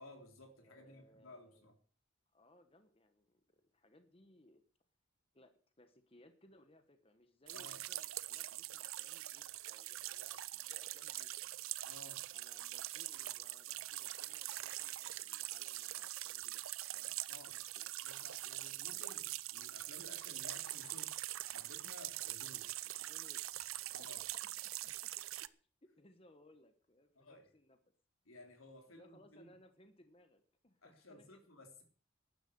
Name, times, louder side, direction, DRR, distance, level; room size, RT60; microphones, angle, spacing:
voice 1, 0.0-1.8 7.5-7.8 11.8-12.3 17.3-17.6 18.0-21.2 21.4-22.7 23.9-24.2 27.2-27.5 28.3-29.5 30.8-31.8, left 1 dB, 90° left, 4 dB, 3.7 m, -56 dB
voice 2, 0.6-1.7 2.3-4.6 5.3-11.5 12.3-17.2 17.4-17.9 22.8-23.4 23.8-25.1 25.4-27.8 28.9-31.5, left 1 dB, 25° left, 8 dB, 1.1 m, -65 dB
sound 1, 7.5-25.5, right 15 dB, 85° right, 0.6 m, -43 dB
12.5 x 10.5 x 6.7 m, 0.43 s
head